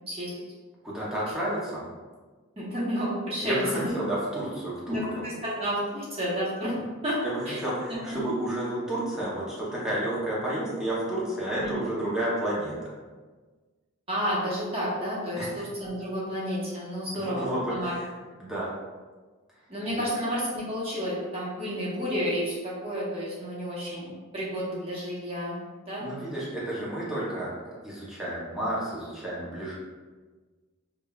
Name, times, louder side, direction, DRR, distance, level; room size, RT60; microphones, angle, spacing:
voice 1, 0.8-1.8 3.4-5.3 7.2-12.9 15.4-15.5 17.1-18.0 18.4-18.7 19.9-20.1 26.0-29.7, right 1 dB, 5° right, -8 dB, 0.6 m, -31 dB
voice 2, 2.6-3.6 4.9-6.7 7.0-7.2 7.5-7.6 7.9-8.2 11.5-11.7 14.1-17.9 19.7-25.6 25.8-26.1, equal, 30° right, -7 dB, 0.9 m, -31 dB
5.2 x 2.2 x 2.3 m, 1.3 s
head